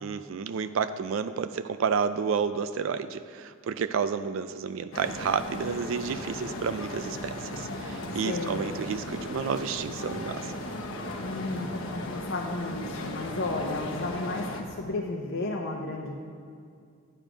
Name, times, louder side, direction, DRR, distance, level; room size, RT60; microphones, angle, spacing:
voice 1, 0.0-10.5, right 6 dB, 70° right, 11 dB, 0.4 m, -30 dB
sound 1, 4.9-14.6, left 1 dB, 85° left, 1.1 m, -36 dB
voice 2, 8.2-8.7 11.2-14.4 14.8-16.1, left 2 dB, 60° left, 0 dB, 0.8 m, -33 dB
11.0 x 9.0 x 5.0 m, 2.3 s
head